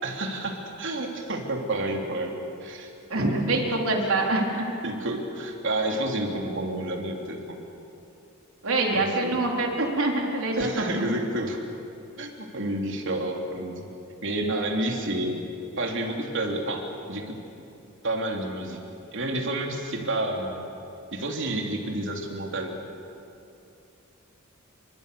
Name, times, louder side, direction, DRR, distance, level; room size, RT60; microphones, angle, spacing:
voice 1, 0.0-2.9 3.1-3.7 4.8-7.6 8.9-9.4 10.6-11.6 12.2-13.9 14.2-15.4 15.8-17.4 18.0-18.8 19.1-20.7 21.1-22.7, right 1 dB, 60° right, 2 dB, 3.6 m, -30 dB
voice 2, 3.1-4.7 8.6-11.1, right 2 dB, 85° right, 0 dB, 4.1 m, -25 dB
29.0 x 25.5 x 7.1 m, 2.7 s
head